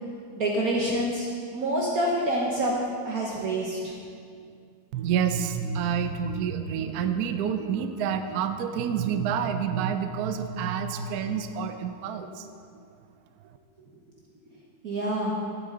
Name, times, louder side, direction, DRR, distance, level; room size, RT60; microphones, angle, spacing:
voice 1, 0.4-2.7 3.0-3.9 14.8-15.3, right 1 dB, 55° right, -3 dB, 1.4 m, -27 dB
voice 2, 4.9-12.5, right 7 dB, 70° right, 8 dB, 0.9 m, -28 dB
11.5 x 9.5 x 3.8 m, 2.3 s
omnidirectional pair, 2.1 m